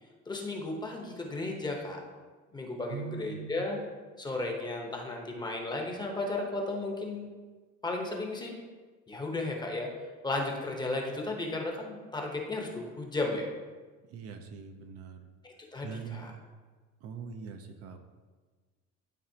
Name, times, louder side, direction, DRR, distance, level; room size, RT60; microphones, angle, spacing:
voice 1, 0.3-2.0 2.5-3.8 4.2-7.3 7.8-8.5 9.1-9.9 10.2-13.5 15.4-16.3, left 2 dB, 15° left, 0 dB, 0.9 m, -34 dB
voice 2, 2.9-3.6 14.1-15.3 15.8-16.4 17.0-18.0, right 6 dB, 55° right, 6 dB, 0.6 m, -42 dB
12.0 x 4.0 x 2.8 m, 1.4 s
cardioid pair, 150°, 30 cm